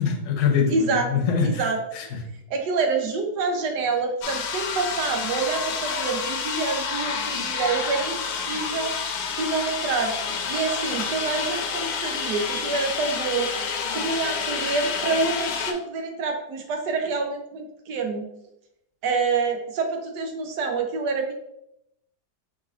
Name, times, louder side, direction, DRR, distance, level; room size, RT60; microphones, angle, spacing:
voice 1, 0.0-2.2, left 6 dB, 55° left, 1.0 m, -24 dB
voice 2, 0.7-1.1 1.4-1.8 2.5-8.9 9.3-10.2 10.5-13.5 13.9-18.3 19.0-21.3, right 4 dB, 80° right, 1.3 m, -27 dB
sound 1, 4.2-15.7, left 5 dB, 70° left, 1.1 m, -29 dB
4.9 x 4.1 x 2.5 m
omnidirectional pair, 1.8 m